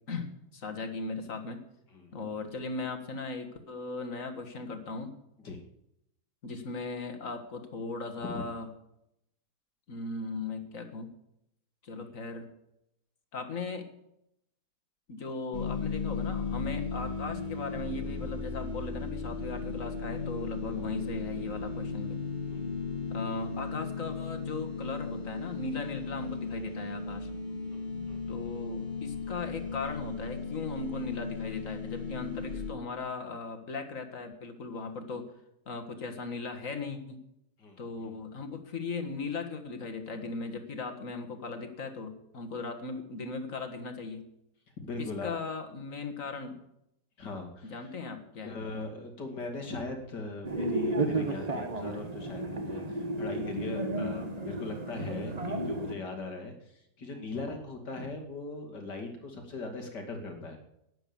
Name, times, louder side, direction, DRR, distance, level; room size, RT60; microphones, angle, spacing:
voice 1, 0.1-1.6 2.1-5.1 6.4-8.7 9.9-11.1 11.8-12.5 13.3-13.9 15.1-22.2 23.1-27.3 28.3-35.3 35.7-37.2 37.8-44.2 45.0-46.6 47.6-48.6, left 3 dB, 50° left, 7 dB, 2.0 m, -38 dB
sound 1, 15.5-32.7, left 4 dB, 25° left, 2.1 m, -36 dB
voice 2, 27.7-28.2 37.6-38.1 44.8-45.3 47.2-47.9 48.4-60.6, left 3 dB, 85° left, 3 dB, 3.0 m, -40 dB
sound 2, 50.4-55.9, right 2 dB, 25° right, 1.2 m, -33 dB
12.5 x 10.0 x 7.1 m, 0.80 s
omnidirectional pair, 1.8 m